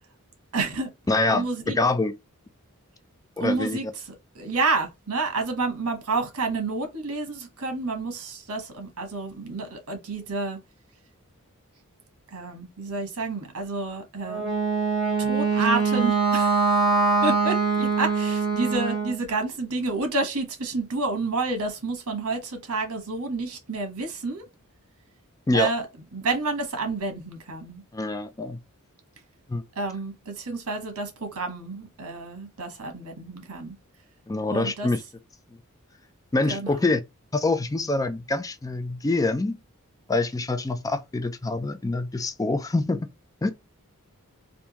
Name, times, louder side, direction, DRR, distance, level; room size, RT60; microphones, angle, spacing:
voice 1, 0.5-0.9 1.3-1.8 3.4-3.8 4.3-10.6 12.3-14.5 15.3-16.8 17.2-24.4 25.5-25.8 26.1-27.8 29.8-33.7 34.5-34.9 36.5-36.8, right 3 dB, 90° right, 1.3 m, -29 dB
voice 2, 1.1-2.1 3.4-3.9 25.5-25.7 27.9-28.6 29.5-29.6 34.3-35.0 36.3-37.0 37.3-39.6 40.1-43.1 43.4-43.5, left 2 dB, 15° left, 0.4 m, -25 dB
Wind instrument woodwind instrument, 14.2-19.2, right 4 dB, ahead, 1.4 m, -23 dB
3.4 x 2.6 x 2.9 m
head